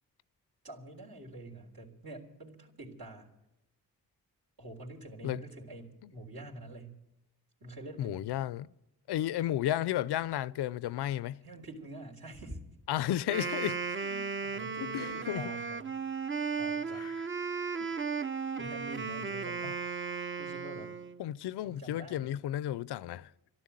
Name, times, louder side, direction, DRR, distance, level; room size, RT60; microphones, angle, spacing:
voice 1, 0.6-3.3 4.6-7.0 7.6-8.2 11.4-12.6 13.9-16.0 16.6-17.1 18.6-19.8 20.4-20.9 21.6-22.4, right 2 dB, 65° right, 3.7 m, -46 dB
voice 2, 8.0-8.7 9.1-11.4 12.9-13.8 14.8-15.5 16.9-17.2 17.8-17.9 19.6-19.7 21.2-23.3, left 12 dB, 85° left, 0.5 m, -33 dB
Wind instrument woodwind instrument, 13.2-21.2, right 5 dB, 30° right, 0.6 m, -35 dB
13.0 x 12.0 x 9.0 m
cardioid pair, 55°, 39 cm